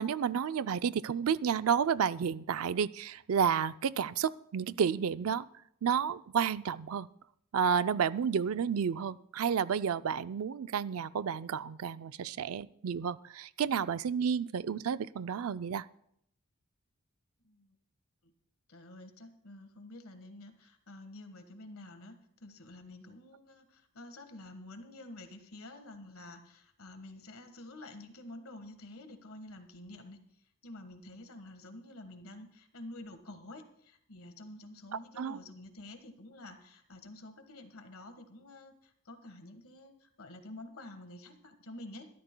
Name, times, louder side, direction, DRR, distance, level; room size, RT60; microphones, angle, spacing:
voice 1, 0.0-5.5 5.8-7.1 7.5-15.8 35.2-35.4, right 7 dB, 80° right, 15 dB, 0.4 m, -31 dB
voice 2, 17.4-17.8 18.2-18.3 18.7-30.2 30.6-42.1, left 1 dB, 85° left, 8 dB, 1.5 m, -49 dB
23.5 x 13.0 x 2.2 m, 0.72 s
head